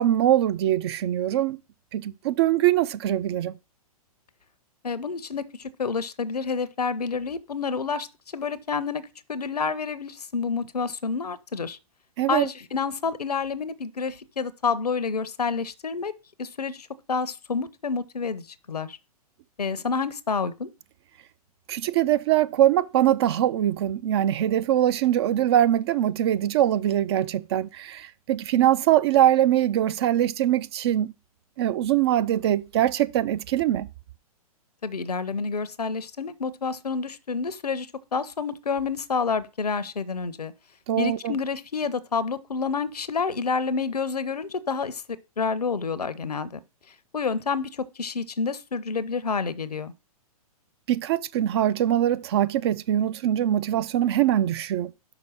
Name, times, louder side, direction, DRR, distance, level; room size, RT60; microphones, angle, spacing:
voice 1, 0.0-1.6 1.9-3.6 12.2-12.5 21.7-31.1 31.6-33.9 40.9-41.4 50.9-54.9, right 12 dB, 45° right, 0.4 m, -22 dB
voice 2, 4.8-8.1 8.3-11.8 12.3-16.1 16.4-19.0 19.6-20.7 34.8-40.5 41.0-45.0 45.4-46.6 47.1-49.9, left 5 dB, 85° left, 0.6 m, -29 dB
5.9 x 4.4 x 5.5 m
figure-of-eight pair, 115°, 20 cm